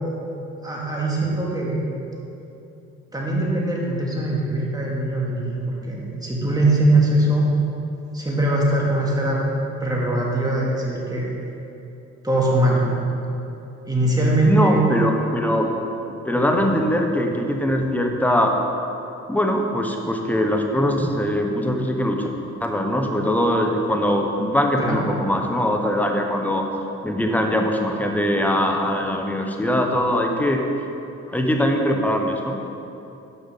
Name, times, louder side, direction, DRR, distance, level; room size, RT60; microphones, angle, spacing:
voice 1, 0.6-1.8 3.1-5.6 5.9-7.5 8.1-9.4 9.8-11.3 12.2-13.1 13.9-14.8 16.5-16.6 24.8-25.0, right 2 dB, 15° right, -4 dB, 2.3 m, -21 dB
voice 2, 14.5-15.7 16.2-18.5 19.3-22.3 22.6-26.6 27.0-30.6 31.3-32.6, left 1 dB, 5° left, 2 dB, 1.1 m, -21 dB
9.8 x 6.2 x 5.7 m, 2.9 s
cardioid pair, 90°, 30 cm